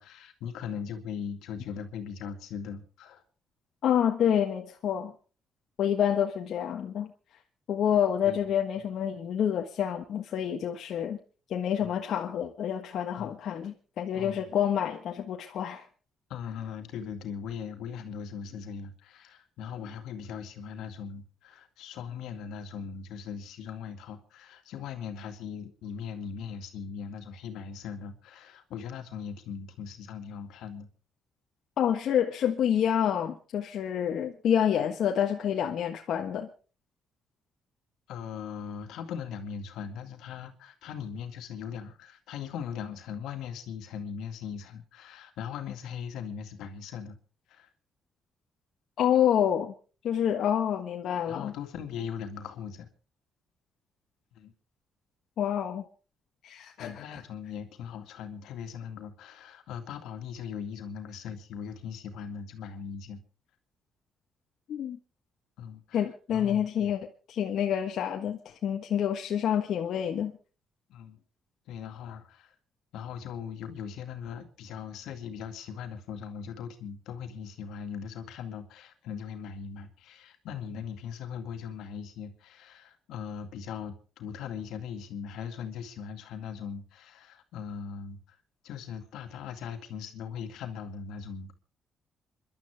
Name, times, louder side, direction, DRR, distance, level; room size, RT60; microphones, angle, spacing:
voice 1, 0.0-3.2 8.2-8.4 11.8-12.0 13.2-13.3 14.1-14.5 16.3-30.9 38.1-47.2 47.5-47.7 51.3-52.9 54.4-54.5 56.8-63.2 65.6-66.0 66.3-66.9 70.9-71.2 71.7-72.5 72.9-88.2 88.6-91.5, left 7 dB, 85° left, 2.2 m, -39 dB
voice 2, 3.8-5.1 5.8-7.1 7.7-11.2 11.5-15.8 31.8-36.5 49.0-49.7 50.0-51.5 55.4-55.8 56.4-57.2 64.7-65.0 65.9-67.0 67.3-70.3, left 9 dB, 70° left, 1.4 m, -28 dB
27.5 x 12.0 x 3.5 m
cardioid pair, 90°, 0 cm